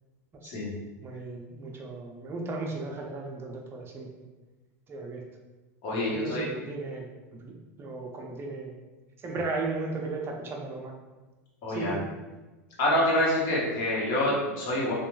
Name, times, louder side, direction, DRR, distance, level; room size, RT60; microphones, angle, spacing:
voice 1, 1.0-4.1 4.9-5.2 6.1-8.7 9.2-10.9 11.7-12.0, right 3 dB, 25° right, 1 dB, 0.5 m, -36 dB
voice 2, 5.8-6.4 11.6-12.0 12.8-14.9, left 1 dB, 55° left, -5 dB, 1.1 m, -26 dB
2.9 x 2.3 x 2.3 m, 1.2 s
hypercardioid pair, 95°, 9 cm